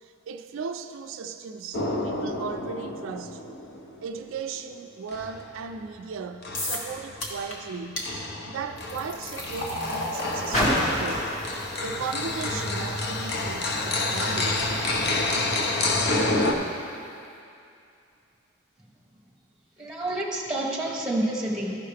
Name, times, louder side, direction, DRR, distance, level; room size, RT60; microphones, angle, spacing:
voice 1, 0.0-3.4 4.0-8.1 8.5-11.3 11.8-14.7, right 5 dB, 75° right, 6 dB, 0.4 m, -37 dB
sound 1, 1.7-4.3 5.1-6.0 6.4-7.4 8.0-16.5, left 2 dB, 55° left, 0.7 m, -29 dB
sound 2, 6.5-6.9 7.2-7.6 8.0-8.1 8.8-15.9, left 1 dB, 75° left, 1.5 m, -37 dB
Car, 6.9-13.5 14.3-14.4, equal, 35° left, 2.0 m, -33 dB
voice 2, 19.8-21.8, right 1 dB, 5° right, -3 dB, 1.1 m, -28 dB
14.0 x 5.5 x 3.4 m, 2.6 s
head